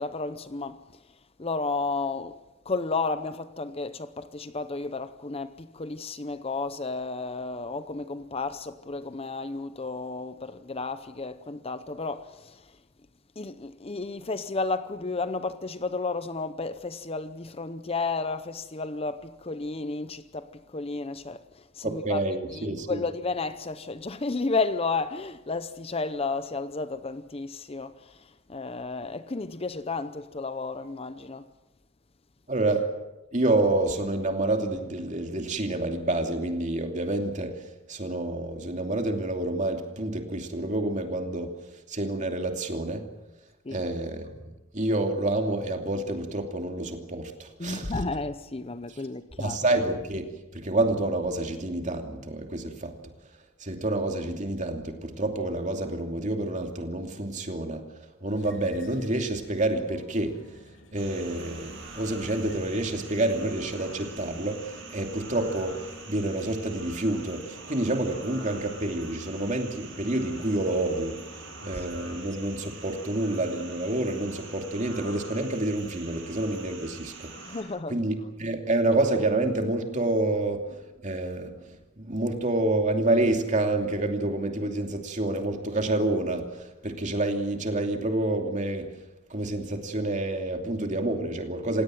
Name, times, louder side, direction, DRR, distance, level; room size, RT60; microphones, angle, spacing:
voice 1, 0.0-12.8 13.4-31.5 43.6-43.9 47.6-49.6 71.7-71.8 77.4-78.0, left 3 dB, 25° left, 0.7 m, -32 dB
voice 2, 21.8-23.0 32.5-32.9 33.3-41.5 41.9-43.0 43.7-44.3 44.7-47.9 49.4-52.9 53.6-57.8 58.2-60.3 60.9-71.2 71.6-77.6 77.9-88.9 89.3-91.8, right 2 dB, 35° right, 2.7 m, -28 dB
sound 1, 58.3-72.7, left 1 dB, 60° left, 2.8 m, -50 dB
sound 2, 60.9-77.6, right 3 dB, 60° right, 7.9 m, -45 dB
27.5 x 17.5 x 7.7 m
head